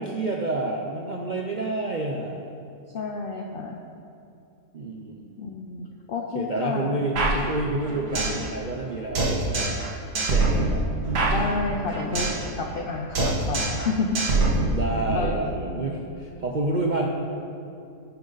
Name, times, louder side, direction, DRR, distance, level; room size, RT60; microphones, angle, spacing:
voice 1, 0.0-2.5 4.7-5.4 6.3-9.8 10.3-10.8 14.7-17.1, right 2 dB, 60° right, 0 dB, 0.4 m, -29 dB
voice 2, 2.9-3.8 5.4-7.0 11.3-14.2 15.1-16.0, left 4 dB, 60° left, 1 dB, 0.6 m, -30 dB
sound 1, 7.2-8.4 8.7-8.8 9.2-9.9 10.2-12.4 12.7-12.9 13.2-13.9 14.2-15.2, right 3 dB, 80° right, 2.2 m, -24 dB
10.5 x 10.0 x 4.0 m, 2.6 s
omnidirectional pair, 1.7 m